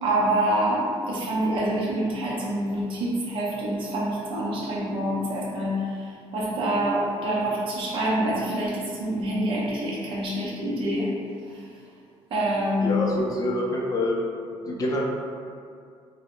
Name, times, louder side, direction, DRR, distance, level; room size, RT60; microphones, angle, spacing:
voice 1, 0.0-11.2 11.5-11.6 12.3-13.2, right 1 dB, 60° right, -5 dB, 0.6 m, -26 dB
voice 2, 12.8-14.2 14.7-15.1, left 1 dB, 35° left, -2 dB, 0.4 m, -26 dB
2.1 x 2.1 x 2.9 m, 2.3 s
cardioid pair, 130°, 10 cm